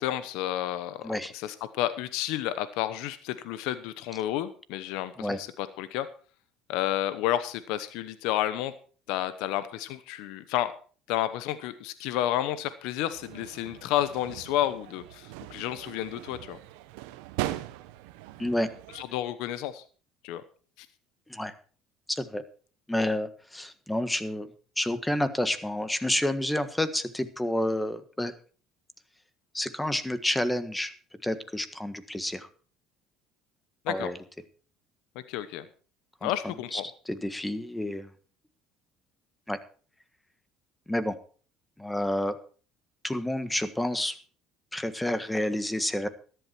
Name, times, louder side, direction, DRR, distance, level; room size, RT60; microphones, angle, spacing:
voice 1, 0.0-6.1 6.7-8.7 9.1-10.7 11.1-16.6 18.9-19.8 20.2-20.4 20.8-20.9 33.8-34.1 35.3-35.6 36.2-36.8, left 13 dB, 75° left, 13 dB, 1.0 m, -31 dB
sound 1, 13.1-19.0, right 15 dB, 85° right, 1.0 m, -40 dB
voice 2, 22.1-22.4 22.9-24.5 24.8-28.3 29.5-30.9 31.2-32.5 33.9-34.2 36.2-36.8 37.1-38.1 39.5-39.6 40.9-41.1 41.8-42.4 43.0-44.2 44.7-46.1, left 1 dB, 10° left, 12 dB, 1.5 m, -29 dB
13.5 x 11.5 x 4.6 m, 0.41 s
supercardioid pair, 90°, 0 cm